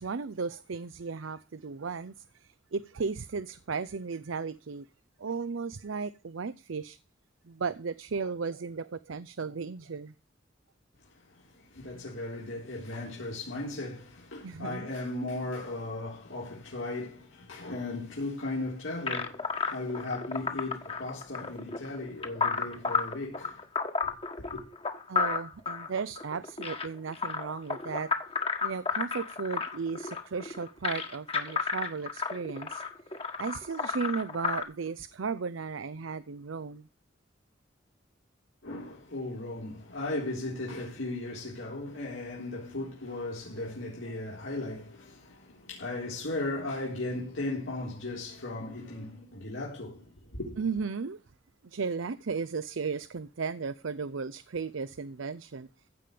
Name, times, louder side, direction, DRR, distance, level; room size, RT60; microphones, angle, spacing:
voice 1, 0.0-4.9 5.2-7.0 7.4-10.1 14.4-14.9 25.1-28.1 28.6-32.8 33.4-36.9 50.6-51.2 51.6-55.7, right 5 dB, 80° right, 0.6 m, -35 dB
voice 2, 11.0-23.6 24.4-24.6 38.6-50.6, left 2 dB, 85° left, 3.9 m, -37 dB
sound 1, 19.1-34.6, left 5 dB, 30° left, 1.5 m, -32 dB
15.5 x 5.2 x 9.2 m
head